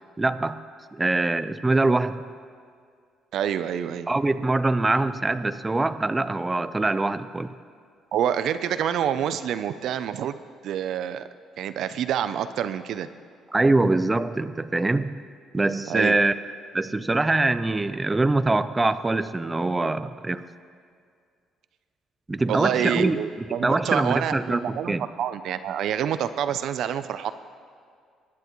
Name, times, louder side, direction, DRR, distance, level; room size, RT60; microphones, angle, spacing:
voice 1, 0.2-0.6 0.9-2.2 4.1-7.5 13.5-15.1 15.5-16.3 16.7-20.4 22.3-23.2 23.6-25.1, right 2 dB, 15° right, 12 dB, 0.4 m, -23 dB
voice 2, 3.3-4.1 8.1-10.3 10.6-11.3 11.6-13.1 15.9-16.2 22.5-27.3, right 9 dB, 70° right, 12 dB, 0.5 m, -27 dB
21.5 x 10.5 x 3.1 m, 2.2 s
cardioid pair, 105°, 0 cm